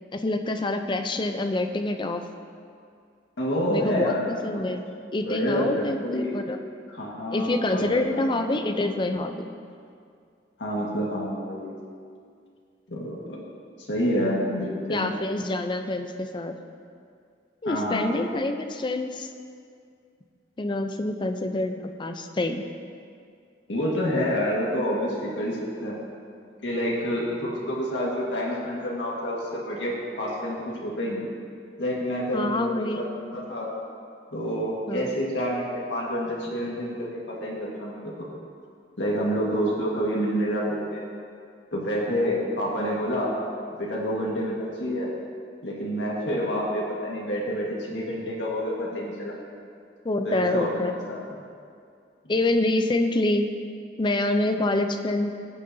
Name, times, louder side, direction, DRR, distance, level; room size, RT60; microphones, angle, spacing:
voice 1, 0.1-2.2 3.7-4.8 5.1-6.6 7.3-9.5 14.9-16.5 17.6-19.3 20.6-22.6 32.3-33.1 34.9-35.2 50.0-51.1 52.3-53.5 54.0-55.3, left 2 dB, 25° left, 6 dB, 0.5 m, -26 dB
voice 2, 3.4-4.6 5.2-6.3 6.9-8.4 8.6-8.7 10.6-11.7 12.9-13.4 13.8-15.1 17.6-18.0 23.7-26.0 26.6-31.3 31.8-33.7 34.3-38.3 39.0-41.0 41.7-43.3 43.8-45.1 45.6-49.3 50.2-51.2, equal, 90° left, -3 dB, 1.6 m, -28 dB
16.5 x 6.6 x 2.7 m, 2.3 s
head